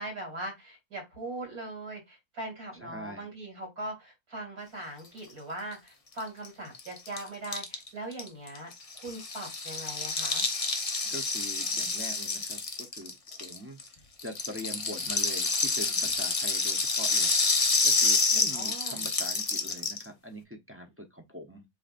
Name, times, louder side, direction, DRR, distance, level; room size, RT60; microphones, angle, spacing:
voice 1, 0.0-8.7 9.0-10.5 18.5-19.1, right 1 dB, 75° right, 2.8 m, -40 dB
voice 2, 2.8-3.3 11.0-13.8 14.2-17.3 17.8-21.6, equal, 15° right, 0.4 m, -43 dB
Rattle (instrument), 6.2-6.3 6.4-6.5 6.7-13.9 14.2-20.1, left 3 dB, 35° left, 0.6 m, -28 dB
7.9 x 2.6 x 2.5 m
omnidirectional pair, 1.6 m